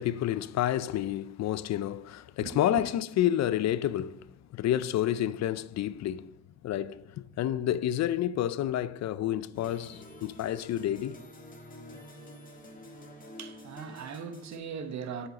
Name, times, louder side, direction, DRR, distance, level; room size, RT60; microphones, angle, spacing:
voice 1, 0.0-6.4 6.6-11.2, left 12 dB, 60° left, 0.5 m, -29 dB
voice 2, 2.4-2.8 13.2-15.3, right 6 dB, 65° right, 1.1 m, -40 dB
sound 1, 9.5-14.6, left 1 dB, 25° left, 1.8 m, -48 dB
7.8 x 7.3 x 4.0 m
cardioid pair, 90°, 30 cm